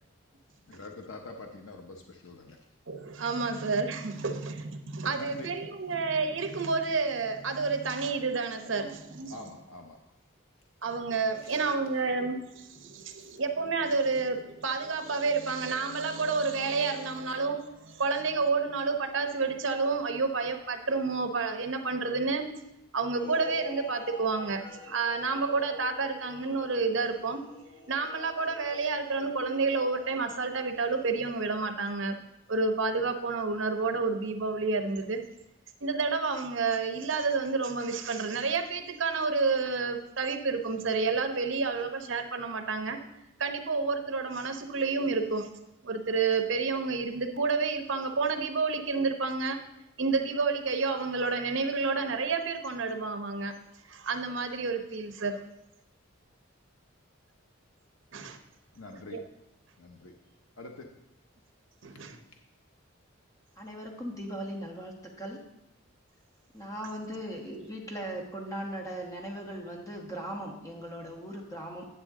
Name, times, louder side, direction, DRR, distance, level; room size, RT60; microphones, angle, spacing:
voice 1, 0.7-2.6 3.4-3.5 5.1-5.5 9.3-10.0 11.4-11.6 13.2-13.3 58.7-59.2 59.8-60.1 60.6-60.9, left 2 dB, 85° left, 2 dB, 0.8 m, -45 dB
voice 2, 2.9-9.3 10.8-22.5 22.9-27.4 27.9-32.2 32.5-35.2 35.8-43.0 43.4-45.5 45.8-49.6 50.0-53.5 53.9-55.4 58.1-58.4 59.1-59.2 61.8-62.2, right 4 dB, 65° right, 7 dB, 0.8 m, -30 dB
sound 1, 23.1-31.7, left 5 dB, 55° left, 1.0 m, -47 dB
voice 3, 63.6-65.4 66.5-71.9, right 1 dB, 15° left, 0 dB, 1.2 m, -38 dB
9.6 x 7.2 x 3.6 m, 0.88 s
head